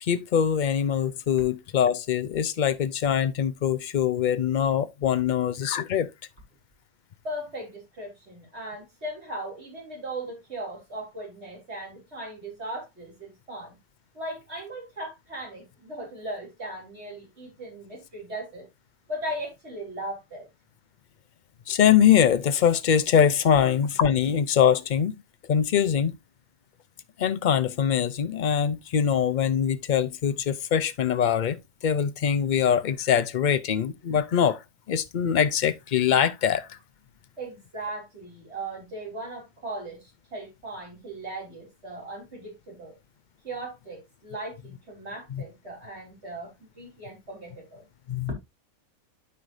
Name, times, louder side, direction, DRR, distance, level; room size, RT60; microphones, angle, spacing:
voice 1, 0.0-6.1 21.7-25.1 25.5-26.1 27.2-31.6 31.8-34.6 34.9-36.8 45.3-45.4 48.1-48.3, left 8 dB, 55° left, 0.5 m, -23 dB
voice 2, 7.2-13.8 14.1-18.7 19.1-20.5 37.4-40.0 40.3-42.9 43.4-47.8, right 1 dB, 45° right, 4.1 m, -38 dB
12.5 x 4.9 x 2.6 m
omnidirectional pair, 1.5 m